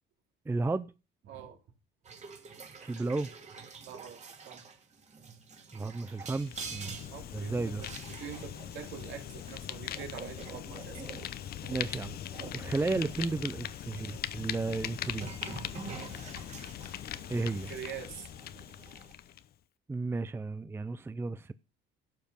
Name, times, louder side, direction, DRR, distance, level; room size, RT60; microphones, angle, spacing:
voice 1, 0.5-0.9 2.8-3.3 5.7-7.0 7.3-7.8 11.7-12.2 12.5-15.3 17.3-17.7 19.9-21.5, right 3 dB, 10° right, 0.5 m, -33 dB
voice 2, 1.3-1.6 3.8-4.6 7.1-7.9 8.2-11.0 15.9-16.1 17.5-18.3, right 8 dB, 75° right, 2.8 m, -45 dB
sound 1, 2.0-14.2 15.1-19.1, right 5 dB, 35° right, 2.3 m, -47 dB
Fire, 6.1-19.5, left 11 dB, 55° left, 0.8 m, -41 dB
12.0 x 7.2 x 5.4 m
cardioid pair, 105°, 20 cm